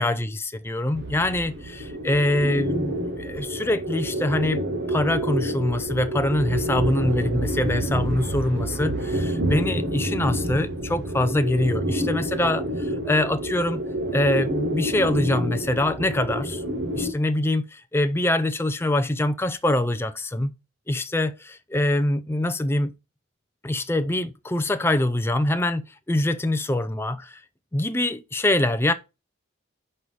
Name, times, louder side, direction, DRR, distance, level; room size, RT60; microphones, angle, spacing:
voice 1, 0.0-4.6 4.9-13.8 14.1-16.6 16.9-20.5 20.9-22.9 23.6-27.4 27.7-28.9, left 1 dB, 10° left, 0.4 m, -24 dB
sound 1, 0.9-17.1, right 1 dB, 55° right, 1.1 m, -28 dB
5.5 x 4.8 x 5.1 m
head